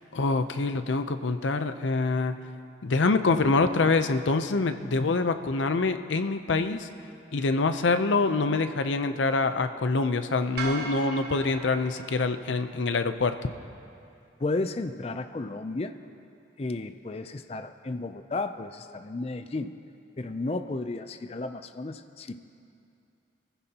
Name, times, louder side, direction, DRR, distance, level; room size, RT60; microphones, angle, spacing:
voice 1, 0.1-2.4 2.8-6.9 7.3-13.5, left 3 dB, 85° left, 10 dB, 0.6 m, -25 dB
sound 1, 10.6-12.9, right 4 dB, 60° right, 1.4 m, -38 dB
voice 2, 14.4-15.9 16.6-19.7 20.2-22.5, left 2 dB, 35° left, 9 dB, 0.4 m, -33 dB
24.0 x 15.0 x 2.9 m, 2.6 s
head